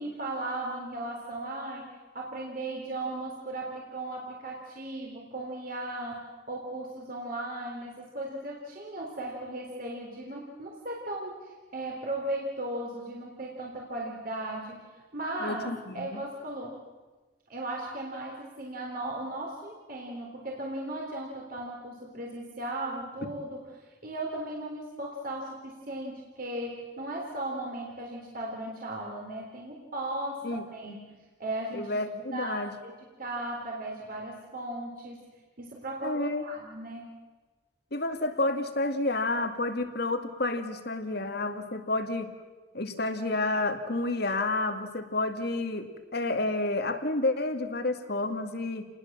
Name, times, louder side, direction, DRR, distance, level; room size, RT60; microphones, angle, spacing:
voice 1, 0.0-15.7 15.9-16.8 17.5-31.9 32.3-32.9 33.2-35.2 35.6-37.1, right 1 dB, 45° right, -1 dB, 3.7 m, -37 dB
voice 2, 15.4-16.2 30.4-30.9 31.7-32.7 36.0-36.4 37.9-42.3 42.7-48.9, left 2 dB, 55° left, 7 dB, 2.3 m, -30 dB
30.0 x 20.0 x 7.5 m, 1.3 s
head